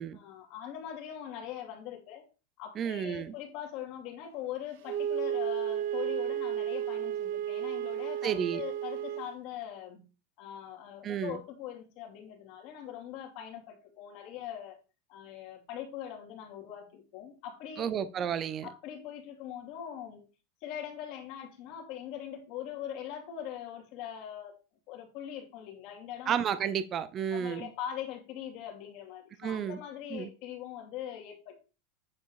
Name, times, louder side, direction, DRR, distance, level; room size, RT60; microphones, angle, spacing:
voice 1, 0.1-2.3 2.6-10.1 10.4-14.8 15.1-17.9 18.6-20.2 20.6-24.6 24.9-26.4 27.3-31.6, left 10 dB, 45° left, 2.5 m, -42 dB
voice 2, 2.8-3.3 8.2-8.6 11.0-11.4 17.8-18.7 26.3-27.7 29.4-29.8 30.1-30.3, right 8 dB, 25° right, 0.5 m, -32 dB
Wind instrument woodwind instrument, 4.9-9.3, right 10 dB, 60° right, 1.0 m, -33 dB
9.4 x 4.7 x 4.8 m
supercardioid pair, 170°, 0 cm